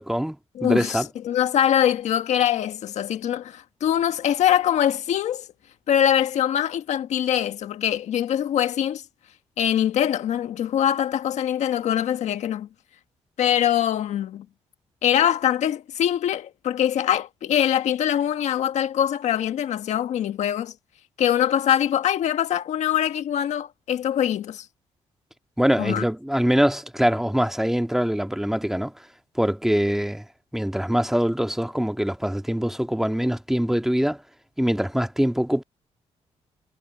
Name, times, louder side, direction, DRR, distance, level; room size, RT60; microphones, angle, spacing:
voice 1, 0.0-1.1 25.6-29.1 29.4-30.3 30.5-34.2 34.6-35.6, equal, 5° right, 1.8 m, -23 dB
voice 2, 0.5-1.0 1.2-5.5 5.9-9.0 9.6-12.7 13.4-14.4 15.0-20.7 21.2-24.6 25.8-26.0, left 10 dB, 75° left, 1.5 m, -23 dB
cardioid pair, 85°, 12 cm